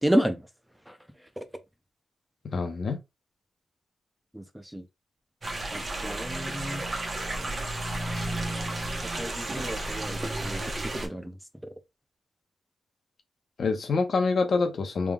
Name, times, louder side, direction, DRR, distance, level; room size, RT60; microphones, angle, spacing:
voice 1, 0.0-0.5 0.9-1.0 1.4-1.5 4.3-4.9 5.7-6.8 9.2-11.4, equal, 5° right, 0.5 m, -31 dB
voice 2, 2.4-3.0 13.6-15.1, left 4 dB, 60° left, 0.9 m, -26 dB
sound 1, 5.4-11.1, right 2 dB, 40° right, 1.1 m, -32 dB
3.5 x 3.5 x 2.3 m
cardioid pair, 70°, 0 cm